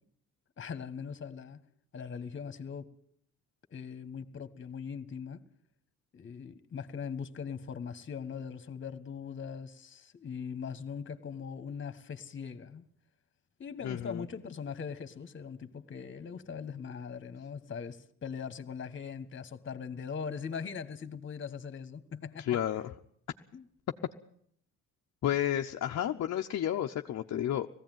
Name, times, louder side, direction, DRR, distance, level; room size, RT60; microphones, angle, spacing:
voice 1, 0.6-1.6 1.9-2.9 3.7-5.4 6.1-12.8 13.6-22.6 23.5-23.6, left 6 dB, 40° left, 1.6 m, -40 dB
voice 2, 13.8-14.2 22.4-22.9 25.2-27.7, left 11 dB, 60° left, 0.8 m, -31 dB
18.0 x 15.5 x 9.3 m
cardioid pair, 90°, 30 cm